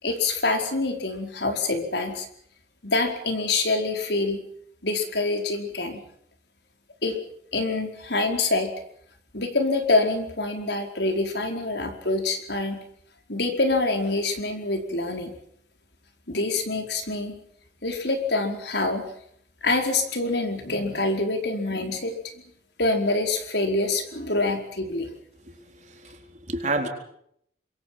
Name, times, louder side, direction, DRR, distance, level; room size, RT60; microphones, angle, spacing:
voice 1, 0.0-2.3 2.8-4.4 4.8-6.0 7.0-7.2 7.5-8.7 9.3-12.8 13.3-15.3 16.3-17.3 17.8-19.0 19.6-22.2 22.8-25.1, left 2 dB, 70° left, 4 dB, 4.8 m, -26 dB
voice 2, 25.4-26.9, right 2 dB, 40° right, 3 dB, 4.3 m, -30 dB
26.5 x 23.5 x 6.0 m, 0.68 s
head